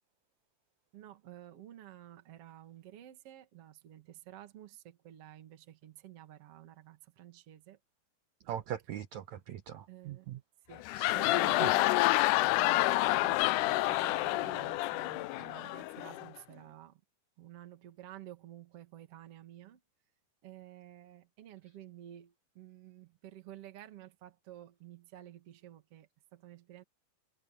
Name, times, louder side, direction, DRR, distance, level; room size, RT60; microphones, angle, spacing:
voice 1, 0.9-7.8 9.9-10.3 10.7-10.9 11.1-11.8 12.6-17.0 17.4-19.8 20.4-26.8, right 13 dB, 50° right, 2.5 m, -52 dB
voice 2, 8.5-10.4 11.0-11.1 11.6-11.7, right 10 dB, 70° right, 1.8 m, -40 dB
sound 1, 10.7-16.3, left 18 dB, 85° left, 1.8 m, -28 dB
omnidirectional pair, 4.2 m